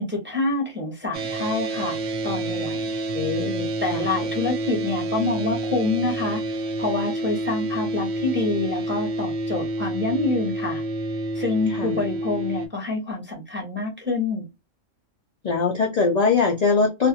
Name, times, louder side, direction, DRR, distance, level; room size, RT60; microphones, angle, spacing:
voice 1, 0.0-2.0 2.2-2.8 3.8-6.4 6.8-10.8 11.3-14.5, left 3 dB, 10° right, -1 dB, 0.7 m, -26 dB
sound 1, 1.1-12.7, right 1 dB, 70° right, 0.9 m, -28 dB
voice 2, 3.1-3.7 3.9-4.0 11.7-12.0 15.4-17.1, left 4 dB, 55° left, 1 dB, 0.4 m, -22 dB
2.5 x 2.4 x 2.6 m, 0.22 s
omnidirectional pair, 1.4 m